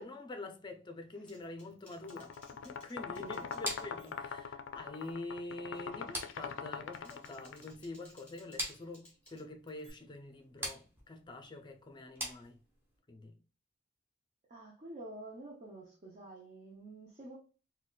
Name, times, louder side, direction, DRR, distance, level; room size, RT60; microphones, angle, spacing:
voice 1, 0.0-12.6 13.1-13.4, left 2 dB, 25° left, 0.5 m, -46 dB
Typing, 1.3-4.4 4.8-5.1 5.5-5.9 6.7-9.9, equal, 5° left, 1.2 m, -62 dB
sound 1, 2.0-7.7, left 6 dB, 85° left, 0.4 m, -43 dB
voice 2, 3.2-3.5 14.5-17.4, right 2 dB, 40° right, 0.6 m, -49 dB
sound 2, 3.6-13.0, equal, 10° right, 0.9 m, -45 dB
4.0 x 2.2 x 2.2 m
head